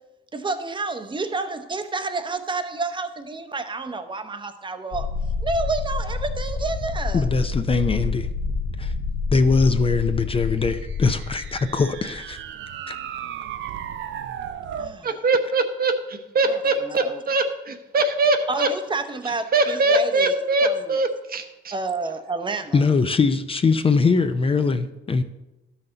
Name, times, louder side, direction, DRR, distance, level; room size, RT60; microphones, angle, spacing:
voice 1, 0.3-5.1 5.4-7.3 14.8-15.1 16.9-17.1 18.5-20.3 20.6-20.8 21.7-22.8, right 3 dB, 25° right, 0.8 m, -29 dB
sound 1, 4.9-12.5, left 4 dB, 65° left, 1.0 m, -28 dB
voice 2, 7.1-8.3 8.8-8.9 9.3-12.4 12.9-13.0 22.7-25.2, left 4 dB, 30° left, 0.5 m, -21 dB
sound 2, 10.6-15.0, right 9 dB, 75° right, 0.5 m, -35 dB
voice 3, 15.0-18.7 19.2-21.7, right 2 dB, 50° right, 1.0 m, -22 dB
12.0 x 5.8 x 3.9 m
cardioid pair, 90°, 20 cm